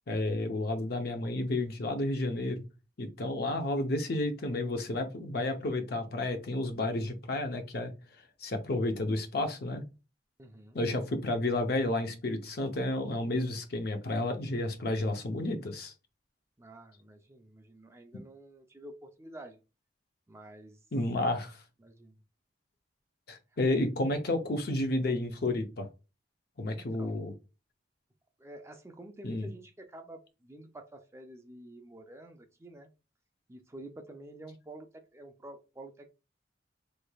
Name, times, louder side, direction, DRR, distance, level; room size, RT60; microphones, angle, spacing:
voice 1, 0.1-2.7 3.0-7.9 8.4-9.8 10.7-15.9 18.1-18.2 20.9-21.6 23.3-25.9 26.6-27.3 29.2-29.5, left 2 dB, 55° left, 6 dB, 0.6 m, -31 dB
voice 2, 10.4-10.8 16.6-19.6 20.3-20.8 21.8-22.2 26.7-27.2 28.4-32.9 33.5-36.1, right 1 dB, 15° right, 5 dB, 0.4 m, -49 dB
3.3 x 3.2 x 2.2 m, 0.30 s
head